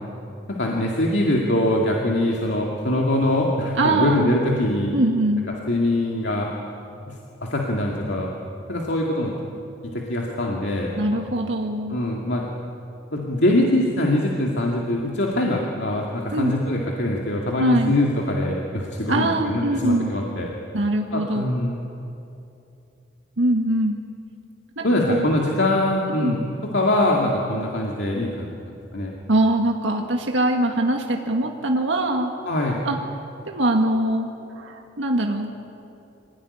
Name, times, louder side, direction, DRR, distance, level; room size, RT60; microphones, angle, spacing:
voice 1, 0.5-4.9 5.7-6.5 7.1-7.2 7.4-8.3 8.7-9.3 9.8-11.2 11.9-12.5 13.1-20.5 21.1-21.8 24.8-26.5 26.7-29.1 32.4-32.8, left 1 dB, 65° left, -2 dB, 2.5 m, -23 dB
voice 2, 3.8-4.3 4.9-5.5 11.0-12.0 16.3-16.5 17.6-17.9 19.1-20.1 20.7-21.4 23.4-24.0 24.8-25.3 26.2-26.3 29.3-32.3 32.8-33.0 33.5-34.3 34.6-35.5, right 1 dB, 85° right, 2 dB, 1.8 m, -22 dB
26.0 x 18.0 x 10.0 m, 2.7 s
head